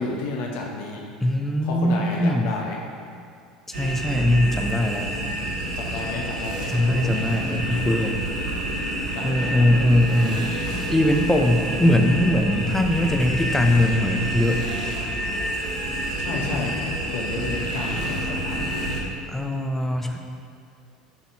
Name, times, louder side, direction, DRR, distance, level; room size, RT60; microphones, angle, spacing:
voice 1, 0.0-1.0 1.6-2.8 5.7-7.4 9.1-9.7 16.2-16.8 17.1-18.8, left 3 dB, 60° left, -1 dB, 1.1 m, -31 dB
voice 2, 1.2-2.5 3.7-5.1 6.7-8.1 9.2-10.5 10.9-14.6 19.3-20.2, left 1 dB, 5° left, 3 dB, 0.8 m, -21 dB
sound 1, 3.7-19.0, right 1 dB, 70° right, 1.3 m, -28 dB
10.5 x 4.1 x 4.7 m, 2.3 s
figure-of-eight pair, 70°, 4 cm